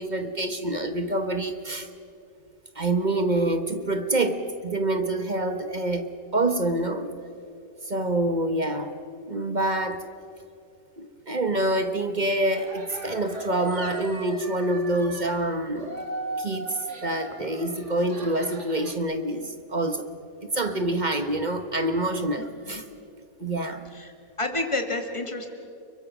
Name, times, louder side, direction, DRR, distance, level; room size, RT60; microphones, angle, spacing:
voice 1, 0.0-1.9 2.7-7.1 7.8-8.9 9.3-10.1 11.0-15.9 16.4-20.1 20.4-22.8 23.4-23.9, right 1 dB, 35° right, 8 dB, 1.2 m, -26 dB
sound 1, 12.5-15.4 15.7-18.9, right 2 dB, 55° right, 2.7 m, -38 dB
voice 2, 22.4-22.8 23.9-25.5, left 2 dB, 20° left, 4 dB, 2.4 m, -30 dB
30.0 x 22.5 x 6.1 m, 2.7 s
omnidirectional pair, 1.5 m